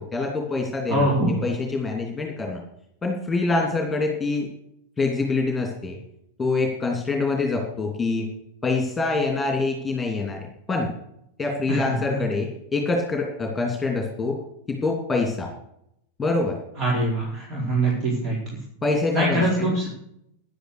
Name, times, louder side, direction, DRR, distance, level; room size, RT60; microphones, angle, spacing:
voice 1, 0.0-1.1 1.4-2.6 3.0-4.5 5.0-6.0 6.4-8.3 8.6-10.9 11.4-14.4 14.7-15.5 16.2-16.6 18.8-19.7, left 3 dB, 15° left, 2 dB, 2.8 m, -25 dB
voice 2, 0.9-1.5 11.7-12.2 16.8-18.4 19.1-19.9, right 1 dB, 40° right, -3 dB, 4.6 m, -23 dB
11.0 x 10.0 x 6.7 m, 0.74 s
figure-of-eight pair, 95°, 0 cm